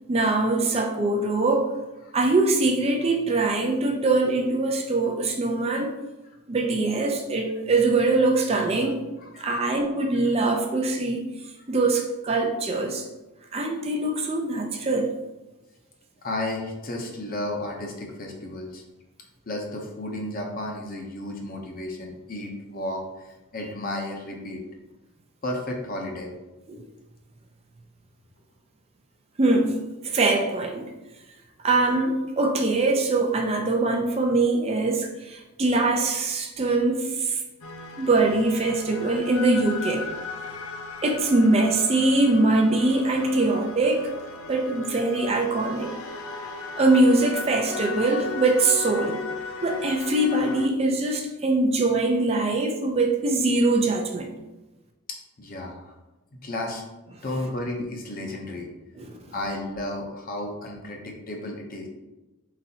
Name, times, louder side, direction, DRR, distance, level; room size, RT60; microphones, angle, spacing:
voice 1, 0.1-1.7 2.1-5.9 6.5-9.0 9.4-11.4 11.7-13.1 13.5-15.1 26.7-26.8 29.4-30.9 31.6-37.4 38.0-40.0 41.0-44.1 44.5-45.9 46.8-49.2 49.6-54.3 59.0-59.2, right 2 dB, 25° right, 2 dB, 0.4 m, -23 dB
voice 2, 9.2-9.7 16.2-18.8 19.5-24.6 25.4-26.3 55.1-55.9 56.3-56.8 57.2-58.7 59.3-61.9, left 1 dB, 40° left, 1 dB, 0.7 m, -33 dB
sound 1, 37.6-50.7, left 4 dB, 75° left, 0.5 m, -36 dB
4.3 x 4.0 x 2.8 m, 1.1 s
head